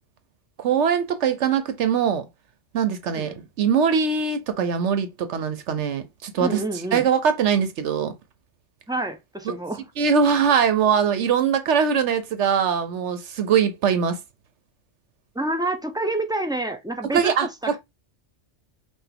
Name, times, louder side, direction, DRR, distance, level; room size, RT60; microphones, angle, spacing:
voice 1, 0.6-2.3 2.7-6.6 6.9-8.1 9.5-9.6 10.0-14.2 17.0-17.8, right 7 dB, 80° right, 1.0 m, -22 dB
voice 2, 6.4-7.1 8.9-9.8 15.3-17.8, right 2 dB, 5° right, 0.4 m, -28 dB
5.8 x 2.5 x 3.3 m
omnidirectional pair, 1.2 m